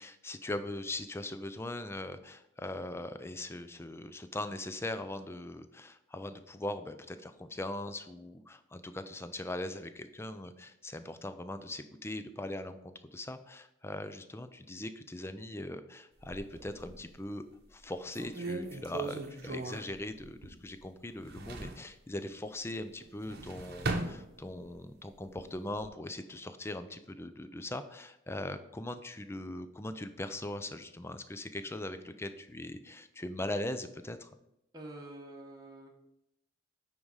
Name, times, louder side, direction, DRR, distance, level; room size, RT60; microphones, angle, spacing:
voice 1, 0.0-17.4 17.7-34.3, left 1 dB, 15° left, 10 dB, 0.4 m, -40 dB
sound 1, 16.2-17.2 17.7-17.8 18.1-20.8 21.1-21.9 23.0-24.8 25.2-25.9, right 3 dB, 50° right, 0.9 m, -39 dB
voice 2, 34.7-35.9, right 1 dB, 20° right, -1 dB, 1.0 m, -47 dB
9.3 x 3.6 x 4.8 m, 0.85 s
head